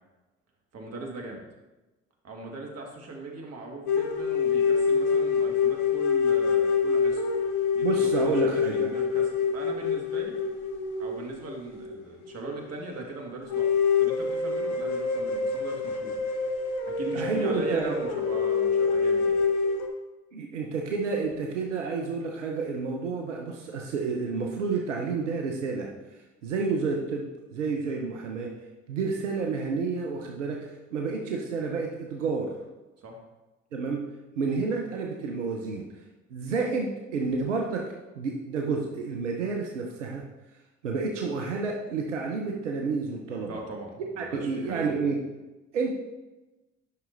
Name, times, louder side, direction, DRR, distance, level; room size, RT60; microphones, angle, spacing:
voice 1, 0.7-1.4 2.2-7.2 7.7-10.4 11.0-13.7 14.0-16.2 16.9-19.4 33.0-33.2 43.4-45.1, right 2 dB, 45° right, 0 dB, 1.8 m, -40 dB
sound 1, 3.9-12.5 12.9-13.0 13.5-19.9, left 5 dB, 75° left, 1.0 m, -26 dB
voice 2, 7.8-8.9 17.1-18.2 20.3-25.9 26.4-28.5 28.9-32.5 33.7-34.0 34.4-35.9 36.3-37.8 38.2-40.2 40.8-43.5 44.2-45.2 45.7-46.0, right 4 dB, 85° right, 1 dB, 0.7 m, -30 dB
9.6 x 5.9 x 2.6 m, 1.1 s
hypercardioid pair, 55°, 35 cm